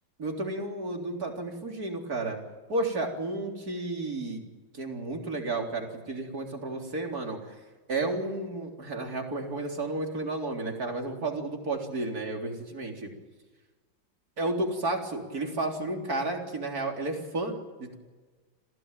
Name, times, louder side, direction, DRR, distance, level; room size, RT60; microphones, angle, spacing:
voice 1, 0.2-2.4 2.7-4.4 4.7-7.4 7.9-13.1 14.4-17.9, right 2 dB, 55° right, 2 dB, 4.2 m, -32 dB
26.5 x 17.5 x 9.1 m, 1.3 s
omnidirectional pair, 1.9 m